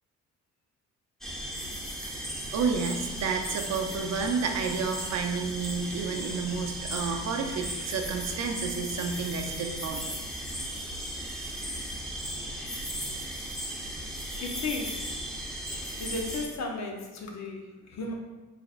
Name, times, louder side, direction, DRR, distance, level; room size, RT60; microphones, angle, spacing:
sound 1, 1.2-16.5, right 1 dB, ahead, 0.7 m, -36 dB
voice 1, 2.5-10.1, right 5 dB, 60° right, 4 dB, 0.6 m, -31 dB
voice 2, 14.4-15.1 15.7-18.1, left 3 dB, 65° left, 1 dB, 0.8 m, -35 dB
4.0 x 3.4 x 2.4 m, 1.2 s
cardioid pair, 90°, 30 cm